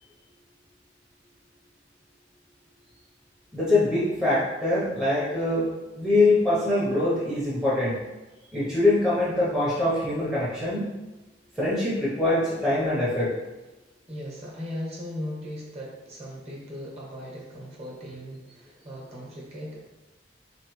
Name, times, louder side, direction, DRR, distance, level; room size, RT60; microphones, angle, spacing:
voice 1, 3.5-5.7 6.0-8.0 8.5-10.9 11.6-13.3, left 2 dB, 5° right, -9 dB, 0.7 m, -23 dB
voice 2, 14.1-19.8, equal, 35° right, -4 dB, 1.0 m, -38 dB
4.0 x 3.0 x 3.0 m, 1.1 s
head